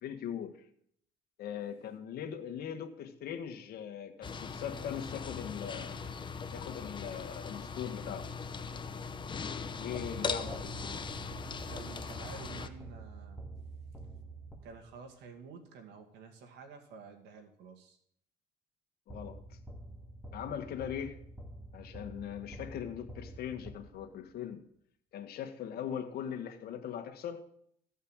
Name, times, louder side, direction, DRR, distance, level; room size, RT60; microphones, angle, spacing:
voice 1, 0.0-0.6 1.4-6.0 6.5-8.3 9.8-10.6 19.1-19.6 20.3-21.2 21.7-24.6 25.1-27.5, left 9 dB, 65° left, 1.6 m, -40 dB
sound 1, 4.2-12.7, left 5 dB, 30° left, 0.9 m, -40 dB
sound 2, 10.0-15.1 19.1-24.3, right 2 dB, 5° right, 1.9 m, -48 dB
voice 2, 10.3-10.6 11.7-13.4 14.6-18.0, right 5 dB, 85° right, 2.2 m, -50 dB
14.5 x 5.5 x 8.8 m
cardioid pair, 110°, 17 cm